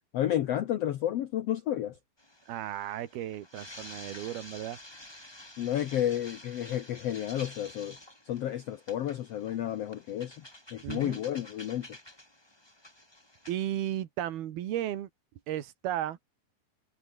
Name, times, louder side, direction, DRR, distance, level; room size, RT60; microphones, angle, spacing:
voice 1, 0.1-2.0 5.6-8.0 8.3-10.3 10.7-11.9, left 11 dB, 85° left, 1.3 m, -31 dB
sound 1, 2.2-13.7, left 1 dB, 5° left, 2.9 m, -50 dB
voice 2, 2.5-4.8 10.8-11.2 13.5-15.1 15.5-16.2, right 12 dB, 85° right, 3.6 m, -34 dB
omnidirectional pair, 4.3 m